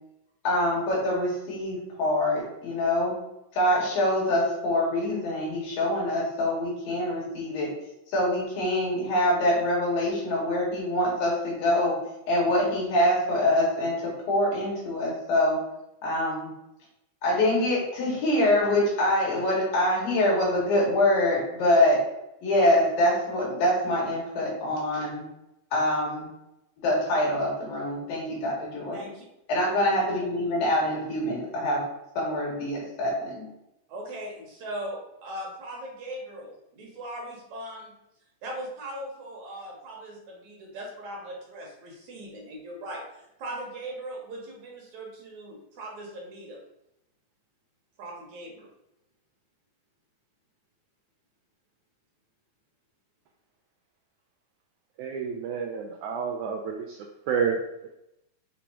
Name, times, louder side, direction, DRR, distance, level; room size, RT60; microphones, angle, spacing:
voice 1, 0.4-3.1 3.5-7.7 8.1-12.0 12.3-15.6 16.0-16.5 17.2-22.0 22.4-25.2 25.7-26.3 26.8-29.0 29.5-31.8 32.2-33.5, left 1 dB, 80° left, -4 dB, 3.8 m, -25 dB
voice 2, 28.9-29.2 33.9-38.0 38.4-46.6 48.0-48.7, right 1 dB, 65° right, -1 dB, 2.1 m, -39 dB
voice 3, 55.0-57.0 57.3-57.6, right 6 dB, 85° right, 1 dB, 1.7 m, -29 dB
7.0 x 3.0 x 4.8 m, 0.88 s
omnidirectional pair, 4.0 m